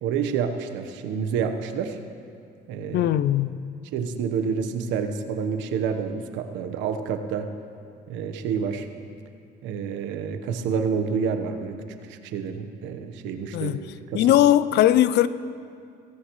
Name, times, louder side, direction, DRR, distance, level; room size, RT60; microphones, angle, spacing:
voice 1, 0.0-2.0 2.7-3.1 3.9-7.5 8.1-8.9 9.6-11.8 12.1-13.7 14.1-14.3, right 6 dB, 80° right, 1.2 m, -28 dB
voice 2, 2.9-3.6 13.5-13.8 14.1-15.3, left 12 dB, 65° left, 0.5 m, -19 dB
18.0 x 17.0 x 3.2 m
cardioid pair, 95°, 19 cm